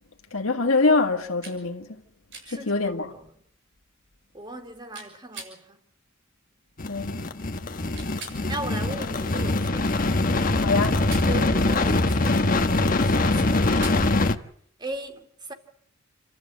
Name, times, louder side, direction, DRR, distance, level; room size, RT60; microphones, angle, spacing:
voice 1, 0.3-1.9 2.5-3.1 6.9-7.2 10.6-11.0, left 3 dB, 75° left, 1.8 m, -24 dB
sound 1, 1.4-1.6 2.3-2.5 4.9-5.5 7.9-8.4 10.8-11.3 13.6-14.0, right 3 dB, 60° right, 7.9 m, -40 dB
voice 2, 2.4-3.3 4.3-5.8 8.5-10.0 11.2-14.2 14.8-15.5, right 1 dB, 20° right, 2.5 m, -38 dB
sound 2, 6.8-14.4, left 2 dB, 40° left, 1.2 m, -23 dB
28.5 x 13.5 x 8.4 m
head